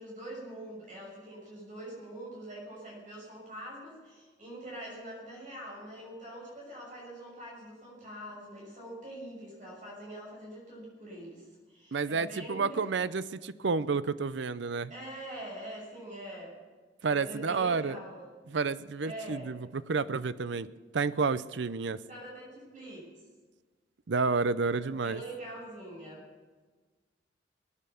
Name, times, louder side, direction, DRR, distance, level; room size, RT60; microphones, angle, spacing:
voice 1, 0.0-13.1 14.9-16.6 17.1-18.3 19.0-19.5 22.1-23.1 24.8-26.2, right 1 dB, 45° right, -3 dB, 6.5 m, -44 dB
voice 2, 11.9-14.9 17.0-18.0 18.5-20.7 20.9-22.0 24.1-25.2, right 4 dB, 70° right, 16 dB, 0.6 m, -30 dB
20.0 x 9.8 x 7.0 m, 1.4 s
head